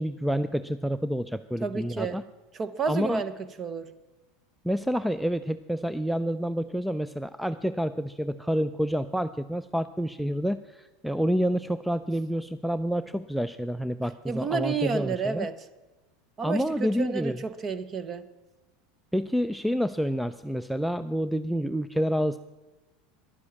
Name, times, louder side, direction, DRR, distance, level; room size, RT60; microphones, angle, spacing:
voice 1, 0.0-2.2 2.9-3.2 4.6-15.5 16.4-17.4 19.1-22.4, equal, ahead, 14 dB, 0.3 m, -28 dB
voice 2, 1.6-2.2 2.5-3.9 14.3-15.6 16.4-18.3, right 5 dB, 30° right, 15 dB, 0.8 m, -31 dB
11.5 x 9.8 x 7.1 m, 1.1 s
supercardioid pair, 125°, 0 cm